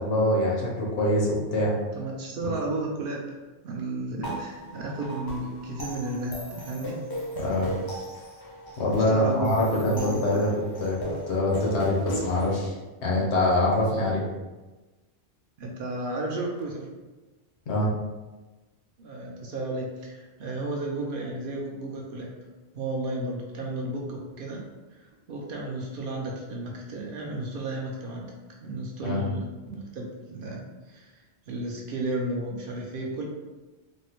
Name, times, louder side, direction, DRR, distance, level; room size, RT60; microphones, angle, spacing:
voice 1, 0.0-1.7 2.4-2.5 7.4-7.7 8.8-10.5 10.8-11.0 11.3-12.7 13.0-14.2 17.7-17.9 29.0-29.2, left 1 dB, 85° left, -3 dB, 1.1 m, -24 dB
voice 2, 1.9-3.4 3.6-7.0 9.0-10.4 15.6-16.9 19.0-22.3 22.7-24.6 24.9-28.3 28.6-33.2, right 2 dB, 60° right, -1 dB, 0.7 m, -33 dB
sound 1, 4.2-12.6, equal, 30° left, 0.4 m, -37 dB
3.5 x 2.0 x 2.9 m, 1.2 s
omnidirectional pair, 1.1 m